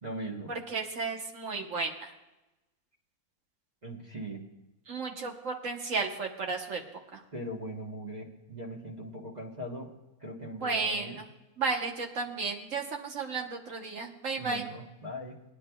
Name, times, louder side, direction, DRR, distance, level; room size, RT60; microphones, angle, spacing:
voice 1, 0.0-0.5 3.8-4.4 7.3-9.9 10.2-11.2 14.4-15.4, right 1 dB, 30° right, -1 dB, 1.1 m, -40 dB
voice 2, 0.7-2.1 4.9-6.8 7.1-7.2 10.6-11.3 11.6-14.7, right 4 dB, 60° right, 2 dB, 1.4 m, -33 dB
20.5 x 10.0 x 2.3 m, 1.0 s
omnidirectional pair, 1.6 m